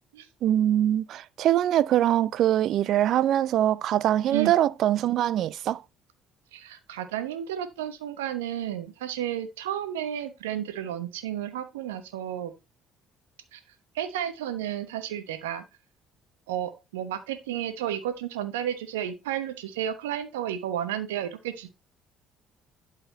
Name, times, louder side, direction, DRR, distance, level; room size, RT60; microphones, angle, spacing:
voice 1, 0.4-5.8, right 12 dB, 65° right, 0.4 m, -23 dB
voice 2, 6.5-12.5 13.5-13.6 13.9-15.6 16.5-21.7, right 10 dB, 85° right, 1.0 m, -32 dB
11.0 x 4.2 x 4.1 m
hypercardioid pair, 60°, 0 cm